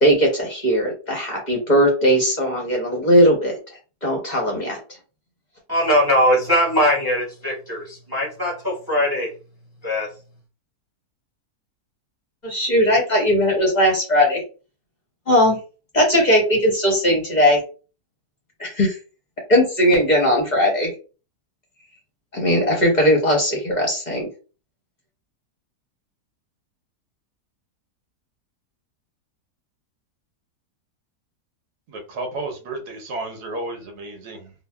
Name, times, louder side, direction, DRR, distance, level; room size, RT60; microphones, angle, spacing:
voice 1, 0.0-3.5 4.0-4.8 12.4-14.4 15.3-15.6 15.9-17.6 18.6-19.0 19.5-20.9 22.3-24.3, equal, 45° left, 0.6 m, -18 dB
voice 2, 5.7-9.3 9.8-10.1, equal, 20° right, 0.6 m, -20 dB
voice 3, 31.9-34.5, right 2 dB, 80° right, 1.3 m, -32 dB
3.9 x 2.0 x 2.2 m
omnidirectional pair, 1.7 m